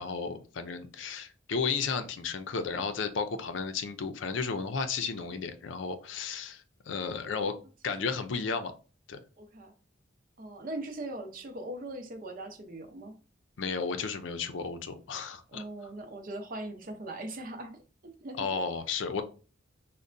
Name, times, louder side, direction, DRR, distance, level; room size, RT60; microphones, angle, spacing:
voice 1, 0.0-7.5 7.8-8.7 9.1-9.2 13.6-15.6 18.4-19.2, left 5 dB, 80° left, 0.5 m, -33 dB
voice 2, 9.4-9.7 10.4-13.2 15.5-18.6, right 1 dB, 45° right, 0.6 m, -40 dB
5.2 x 2.1 x 2.5 m
head